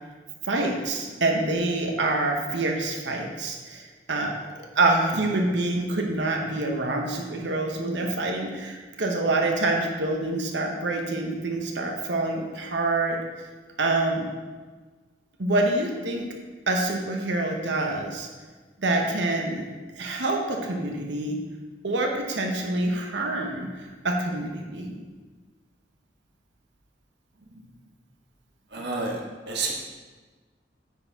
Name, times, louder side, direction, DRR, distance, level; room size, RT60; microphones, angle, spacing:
voice 1, 0.4-4.3 4.7-13.2 13.8-14.3 15.4-16.2 16.7-18.3 18.8-19.7 20.0-21.4 21.8-24.9, right 2 dB, 80° right, 1 dB, 1.0 m, -26 dB
voice 2, 28.7-29.2 29.5-29.7, right 3 dB, 65° right, -2 dB, 1.6 m, -29 dB
9.4 x 4.5 x 4.6 m, 1.3 s
head